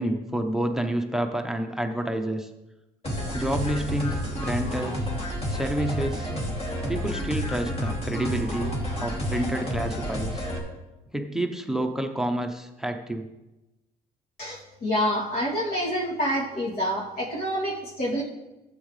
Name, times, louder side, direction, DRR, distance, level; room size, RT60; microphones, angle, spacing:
voice 1, 0.0-2.5 3.3-5.1 5.5-6.3 6.9-10.5 11.1-13.3, right 1 dB, 5° right, 7 dB, 0.8 m, -29 dB
sound 1, 3.0-10.6, equal, 35° left, 2.7 m, -30 dB
voice 2, 14.4-18.2, equal, 60° left, -5 dB, 2.8 m, -27 dB
13.0 x 8.2 x 3.3 m, 1.0 s
cardioid pair, 110°, 17 cm